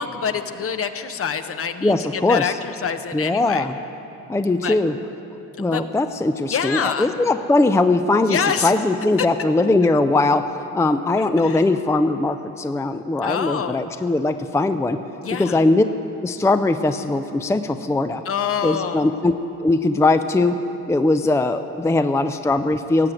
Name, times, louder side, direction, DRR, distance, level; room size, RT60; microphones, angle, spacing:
voice 1, 0.0-3.7 4.5-4.8 5.6-5.8 6.5-7.1 8.2-8.7 11.2-11.6 13.2-13.9 15.2-15.6 18.2-19.1, left 7 dB, 50° left, 9 dB, 0.9 m, -26 dB
voice 2, 1.8-2.5 3.1-3.7 4.3-4.9 5.6-10.5 10.7-15.0 15.4-15.9 16.2-18.2 18.6-19.4 19.6-20.6 20.9-23.1, left 2 dB, 10° left, 9 dB, 0.5 m, -20 dB
17.0 x 7.5 x 9.1 m, 3.0 s
cardioid pair, 90°, 30 cm